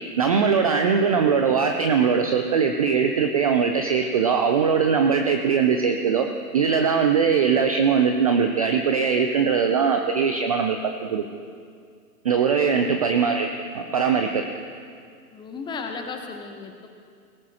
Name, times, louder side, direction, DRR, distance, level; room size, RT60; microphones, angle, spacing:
voice 1, 0.2-6.3 6.5-11.2 12.2-13.5 13.7-14.5, right 6 dB, 25° right, 5 dB, 0.4 m, -21 dB
voice 2, 15.3-16.9, left 4 dB, 10° left, 4 dB, 0.8 m, -35 dB
18.0 x 17.0 x 2.9 m, 2.2 s
hypercardioid pair, 125°, 48 cm